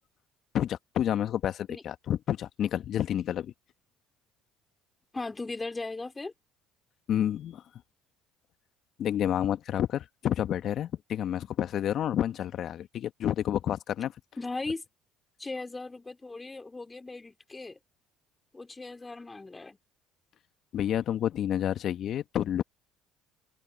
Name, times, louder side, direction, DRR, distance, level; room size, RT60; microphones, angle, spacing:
voice 1, 0.5-3.5 7.1-7.6 9.0-14.1 20.7-22.6, left 10 dB, 55° left, 1.5 m, -29 dB
voice 2, 5.1-6.3 14.4-14.8 15.4-17.8 18.5-19.8, left 3 dB, 20° left, 3.7 m, -37 dB
hypercardioid pair, 65°, 0 cm